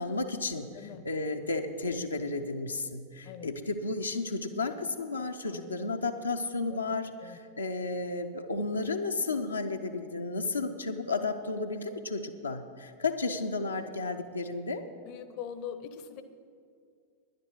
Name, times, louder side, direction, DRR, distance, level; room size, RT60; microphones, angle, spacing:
voice 1, 0.0-14.8, left 3 dB, 80° left, 3 dB, 0.7 m, -33 dB
voice 2, 5.4-5.9 6.7-6.9 7.2-7.4 15.1-16.2, left 8 dB, 45° left, 11 dB, 0.7 m, -42 dB
10.5 x 10.5 x 6.2 m, 2.3 s
figure-of-eight pair, 90°, 0 cm